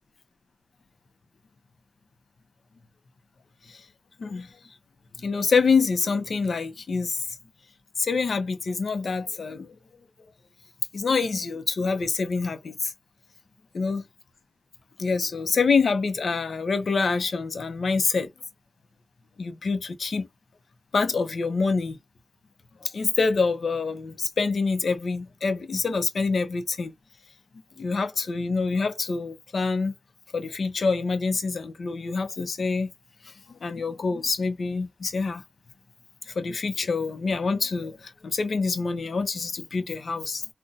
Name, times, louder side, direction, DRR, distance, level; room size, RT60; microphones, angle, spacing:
voice 1, 5.2-7.2 8.0-9.7 10.9-12.9 13.7-14.0 15.0-18.3 19.4-20.3 20.9-22.0 22.8-26.9 27.8-29.9 30.3-32.9 33.2-35.4 36.3-40.4, left 4 dB, 75° left, 0.6 m, -26 dB
3.9 x 2.1 x 2.5 m
wide cardioid pair, 105°, 0 cm